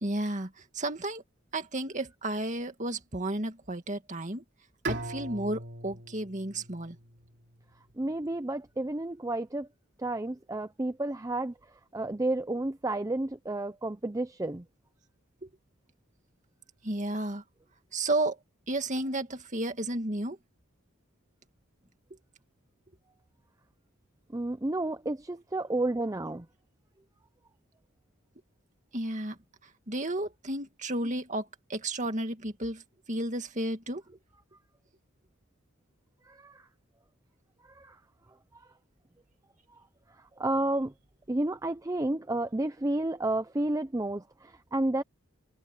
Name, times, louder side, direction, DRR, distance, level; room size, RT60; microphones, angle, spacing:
voice 1, 0.0-1.2 1.5-4.4 4.9-7.0 15.4-15.5 16.8-17.4 17.9-18.4 18.7-20.4 28.9-32.8 33.1-34.0, right 1 dB, 35° right, 2.2 m, -32 dB
Bowed string instrument, 4.8-7.9, right 2 dB, 55° right, 3.6 m, -39 dB
voice 2, 8.0-9.7 10.0-11.5 11.9-14.6 24.3-26.5 36.3-36.6 37.7-38.0 38.5-38.7 40.4-40.9 41.3-45.0, right 2 dB, 15° right, 0.6 m, -31 dB
head